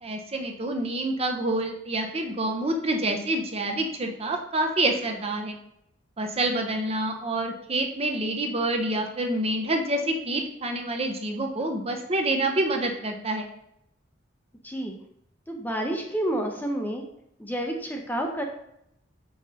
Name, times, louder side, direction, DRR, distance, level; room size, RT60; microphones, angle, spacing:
voice 1, 0.0-5.6 6.2-13.5, right 2 dB, 30° right, 3 dB, 0.7 m, -27 dB
voice 2, 15.5-17.0 17.4-18.4, right 1 dB, 10° left, 2 dB, 0.6 m, -29 dB
6.2 x 5.5 x 2.8 m, 0.78 s
head